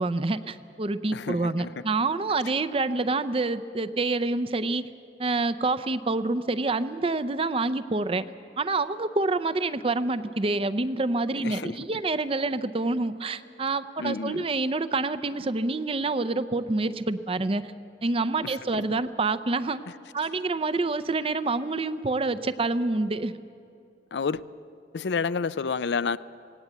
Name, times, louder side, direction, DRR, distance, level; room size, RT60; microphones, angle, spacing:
voice 1, 0.0-4.9 5.2-8.3 8.6-17.6 18.0-19.8 20.1-23.4, right 3 dB, 30° right, 0.6 m, -27 dB
voice 2, 1.1-1.7 11.4-11.8 14.0-14.5 18.4-18.8 24.1-24.4 24.9-26.2, left 5 dB, 75° left, 0.5 m, -30 dB
18.0 x 18.0 x 8.1 m
head